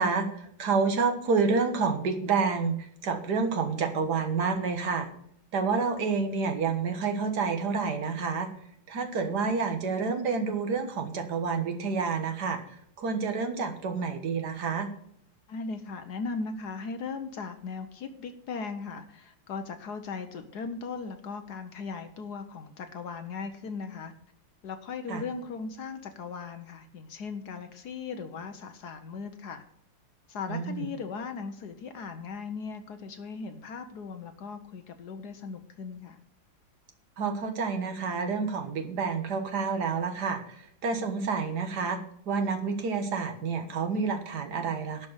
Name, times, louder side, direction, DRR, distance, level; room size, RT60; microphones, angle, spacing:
voice 1, 0.0-2.8 3.0-5.1 5.5-8.5 8.9-12.6 13.0-14.9 25.1-25.2 30.5-30.9 37.2-42.0 42.3-45.1, right 5 dB, 60° right, 5 dB, 1.9 m, -29 dB
voice 2, 15.5-24.1 24.6-29.6 30.3-36.2, left 5 dB, 65° left, 8 dB, 1.3 m, -38 dB
11.5 x 5.3 x 7.9 m, 0.69 s
omnidirectional pair, 2.0 m